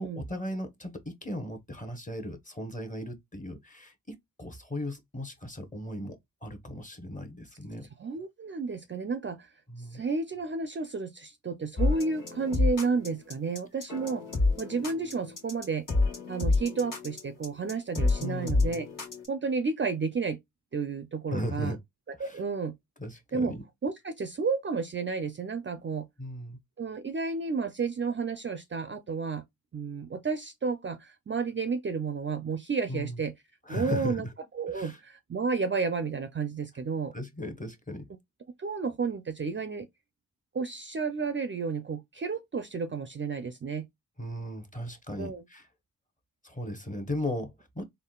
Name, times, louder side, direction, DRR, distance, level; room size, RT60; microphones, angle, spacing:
voice 1, 0.0-7.9 9.7-10.0 18.2-18.8 21.3-21.8 22.2-22.4 23.0-23.6 26.2-26.6 32.9-33.2 33.7-34.3 34.7-35.0 37.1-38.1 44.2-45.7 46.4-47.8, equal, 20° left, 0.9 m, -37 dB
voice 2, 8.0-9.5 9.8-14.2 14.6-15.9 16.3-18.9 19.3-20.4 20.7-21.8 22.2-22.8 23.3-23.5 23.8-26.1 26.8-29.4 29.7-33.3 33.7-34.3 34.5-37.1 38.6-39.9 40.5-43.9 45.2-45.4, right 4 dB, 35° right, 0.5 m, -31 dB
sound 1, 11.8-19.3, left 3 dB, 60° left, 1.5 m, -28 dB
3.7 x 2.1 x 2.3 m
cardioid pair, 50°, 37 cm